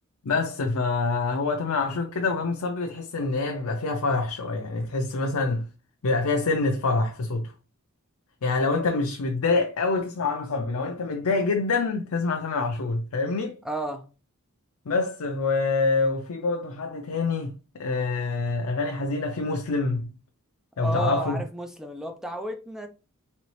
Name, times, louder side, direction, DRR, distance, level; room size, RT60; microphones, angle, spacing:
voice 1, 0.2-5.7 6.0-7.5 8.4-13.6 14.9-20.1 20.8-21.4, left 3 dB, 75° left, 0.5 m, -26 dB
voice 2, 13.6-14.1 20.8-22.9, right 1 dB, ahead, 0.5 m, -32 dB
4.2 x 3.0 x 3.1 m
head